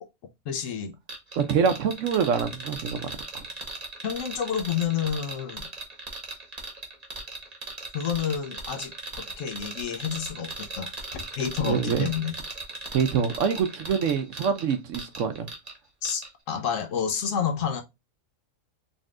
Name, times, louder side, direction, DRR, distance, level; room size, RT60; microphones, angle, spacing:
voice 1, 0.5-0.9 4.0-5.6 7.9-8.9 9.4-12.4 16.0-17.8, left 8 dB, 65° left, 1.0 m, -29 dB
sound 1, 1.1-15.8 16.0-16.3, right 2 dB, 30° right, 1.0 m, -38 dB
voice 2, 1.4-3.4 11.6-12.1 12.9-15.5, right 6 dB, 65° right, 0.9 m, -25 dB
4.1 x 3.4 x 2.4 m
omnidirectional pair, 1.5 m